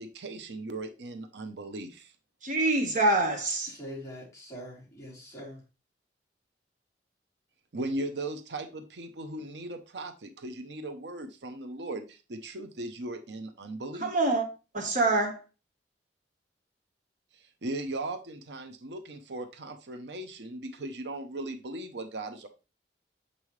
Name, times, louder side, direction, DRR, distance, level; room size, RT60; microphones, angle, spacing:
voice 1, 0.0-2.1 7.7-14.1 17.3-22.5, right 2 dB, 75° right, 7 dB, 0.8 m, -38 dB
voice 2, 2.4-3.7 14.0-14.4 14.7-15.4, right 2 dB, 45° right, 2 dB, 1.4 m, -25 dB
voice 3, 3.6-5.6, equal, 15° left, -6 dB, 3.5 m, -43 dB
7.4 x 5.4 x 3.2 m, 0.31 s
head